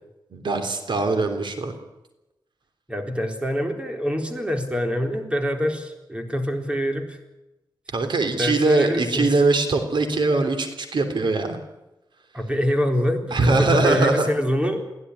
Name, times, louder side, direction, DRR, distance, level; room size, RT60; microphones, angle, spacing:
voice 1, 0.3-1.7 7.9-11.6 13.3-14.3, right 3 dB, 75° right, 7 dB, 3.4 m, -22 dB
voice 2, 2.9-7.2 8.4-9.3 12.3-14.8, equal, 15° right, 4 dB, 4.1 m, -25 dB
23.0 x 16.0 x 10.0 m, 0.96 s
wide cardioid pair, 90°, 8 cm